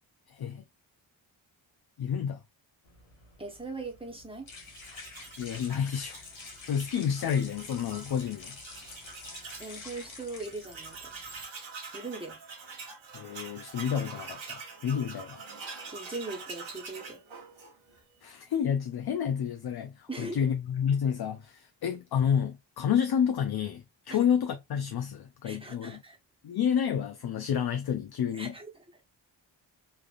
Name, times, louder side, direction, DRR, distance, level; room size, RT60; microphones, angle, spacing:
voice 1, 0.3-0.6 2.0-2.4 5.4-6.2 6.6-8.6 13.1-15.4 18.2-26.0 26.4-28.5, left 8 dB, 55° left, 0.5 m, -30 dB
sound 1, 2.8-11.4, left 4 dB, 90° left, 1.0 m, -48 dB
voice 2, 3.4-4.5 9.6-11.1 11.9-12.4 15.9-17.2 20.1-20.5 24.1-24.2 25.4-26.2 28.3-28.8, right 3 dB, 10° right, 1.1 m, -40 dB
Tools, 4.6-9.8 10.1-10.2 10.4-18.0, right 4 dB, 80° right, 1.0 m, -45 dB
3.3 x 2.5 x 2.5 m
cardioid pair, 55°, 46 cm